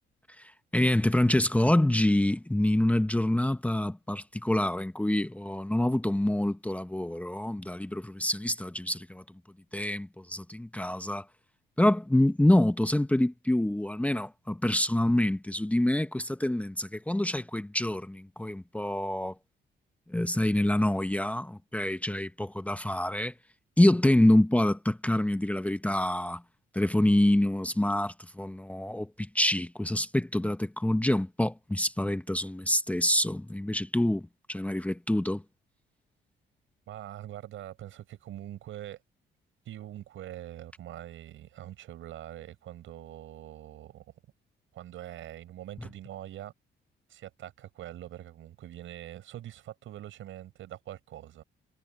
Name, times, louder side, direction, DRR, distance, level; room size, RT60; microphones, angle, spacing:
voice 1, 0.4-9.2 9.7-11.2 11.8-19.3 20.1-23.3 23.8-26.4 26.7-35.4, left 1 dB, 5° left, 1.0 m, -26 dB
voice 2, 36.9-39.0 39.6-44.1 44.7-46.5 47.1-51.4, right 13 dB, 80° right, 6.3 m, -43 dB
cardioid pair, 90°, 20 cm